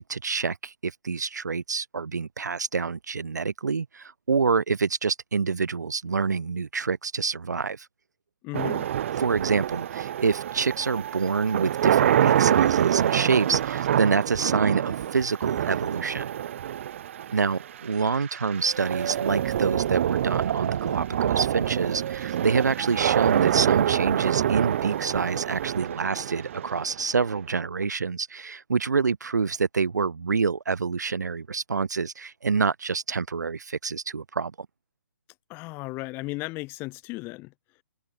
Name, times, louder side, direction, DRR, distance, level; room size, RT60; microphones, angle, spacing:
voice 1, 0.0-7.9 9.2-16.3 17.3-34.5, right 5 dB, 85° right, 0.6 m, -27 dB
voice 2, 8.4-8.9 35.5-37.5, left 23 dB, 25° left, 5.8 m, -35 dB
sound 1, 8.5-27.6, right 10 dB, 50° right, 2.0 m, -26 dB
hypercardioid pair, 145°, 9 cm